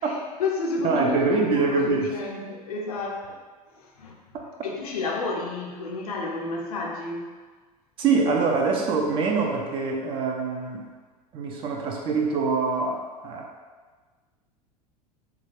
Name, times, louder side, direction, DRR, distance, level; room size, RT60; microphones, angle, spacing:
voice 1, 0.0-3.4 3.8-4.2 4.6-7.3, left 3 dB, 65° left, 0 dB, 0.5 m, -31 dB
voice 2, 0.8-2.2 8.0-10.9 11.3-13.5, right 4 dB, 25° right, 0 dB, 0.3 m, -24 dB
2.4 x 2.2 x 3.3 m, 1.4 s
figure-of-eight pair, 80°, 20 cm